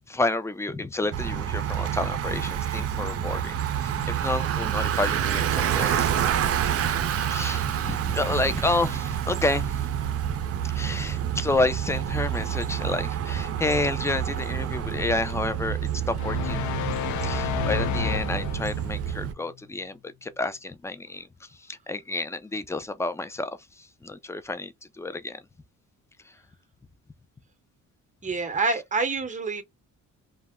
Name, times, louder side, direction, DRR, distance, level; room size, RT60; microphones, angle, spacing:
voice 1, 0.1-6.1 7.3-9.8 10.7-15.8 16.1-16.7 17.2-23.5 23.8-25.4 28.7-28.8, left 2 dB, 10° left, 0.4 m, -30 dB
Bicycle, 1.1-19.3, right 9 dB, 50° right, 0.5 m, -28 dB
sound 1, 16.2-18.9, left 11 dB, 75° left, 0.5 m, -30 dB
voice 2, 28.2-29.6, right 4 dB, 25° right, 0.8 m, -27 dB
2.2 x 2.0 x 3.4 m
cardioid pair, 90°, 30 cm